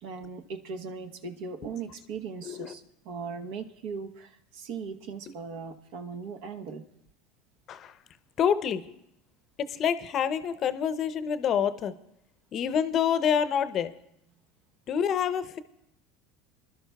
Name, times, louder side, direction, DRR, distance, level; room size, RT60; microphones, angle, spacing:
voice 1, 0.0-6.8, right 5 dB, 70° right, 7 dB, 0.9 m, -39 dB
voice 2, 2.4-2.7 7.7-8.0 8.4-8.9 9.6-11.9 12.5-13.9 14.9-15.6, left 8 dB, 45° left, 13 dB, 0.6 m, -27 dB
25.5 x 12.0 x 2.3 m, 0.76 s
supercardioid pair, 95°, 0 cm